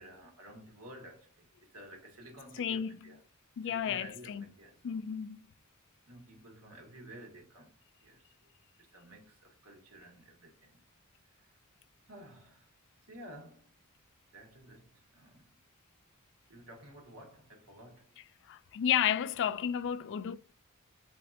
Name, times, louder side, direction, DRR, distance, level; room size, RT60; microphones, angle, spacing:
voice 1, 0.0-3.2 3.6-5.1 6.1-8.5 8.8-10.8 11.3-11.5 12.1-12.7 13.1-13.7 14.3-15.5 16.5-18.2, right 1 dB, 85° right, 1.7 m, -53 dB
voice 2, 2.6-3.1 3.6-4.4 4.8-5.4 18.5-20.4, left 9 dB, 55° left, 0.3 m, -32 dB
7.6 x 2.8 x 2.5 m
head